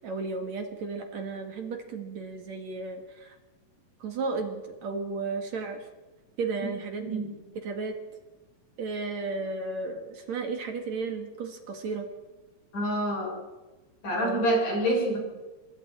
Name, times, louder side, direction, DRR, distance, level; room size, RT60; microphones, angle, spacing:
voice 1, 0.0-3.4 4.0-5.9 6.4-7.2 7.6-8.0 8.8-12.1 14.2-14.5, right 4 dB, 60° right, 4 dB, 3.0 m, -34 dB
voice 2, 12.7-13.3 14.0-15.2, right 1 dB, 90° left, -2 dB, 8.6 m, -26 dB
28.0 x 22.5 x 4.4 m, 1.1 s
omnidirectional pair, 3.6 m